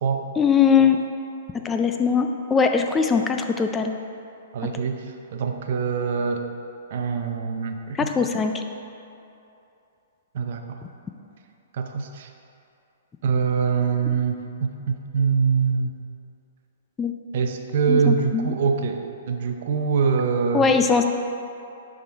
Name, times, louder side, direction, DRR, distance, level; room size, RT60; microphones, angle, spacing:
voice 1, 0.4-1.0 1.6-3.9 7.9-8.6 17.0-17.1 17.9-18.5 20.5-21.1, left 6 dB, 15° left, 6 dB, 0.4 m, -21 dB
voice 2, 4.5-6.5 6.9-8.1 10.3-10.8 11.7-12.3 13.2-16.0 17.3-20.7, right 5 dB, 60° right, 5 dB, 0.6 m, -24 dB
11.0 x 3.7 x 3.5 m, 2.7 s
hypercardioid pair, 130°, 0 cm